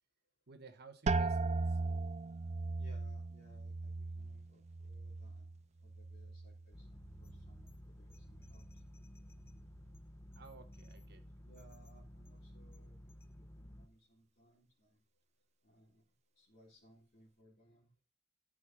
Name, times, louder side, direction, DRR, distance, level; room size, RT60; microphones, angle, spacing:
voice 1, 0.5-1.8 10.4-11.2, right 4 dB, 45° right, 1.1 m, -56 dB
sound 1, 1.1-6.7 7.0-7.7 8.3-8.7, right 3 dB, 30° right, 0.4 m, -38 dB
voice 2, 2.8-8.8 11.4-15.0 15.6-16.0 16.4-17.9, right 1 dB, 40° left, 3.5 m, -65 dB
sound 2, 6.7-13.9, equal, 10° left, 0.8 m, -54 dB
12.5 x 4.9 x 6.0 m
head